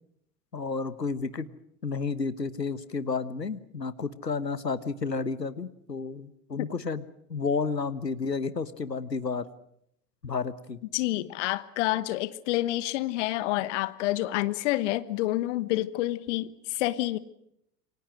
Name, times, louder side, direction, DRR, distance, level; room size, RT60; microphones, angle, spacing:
voice 1, 0.5-1.5 1.8-9.4 10.2-10.8, left 4 dB, 85° left, 14 dB, 1.4 m, -31 dB
voice 2, 10.9-17.2, left 16 dB, 45° left, 16 dB, 1.3 m, -28 dB
28.5 x 24.5 x 6.2 m, 0.76 s
figure-of-eight pair, 90°, 48 cm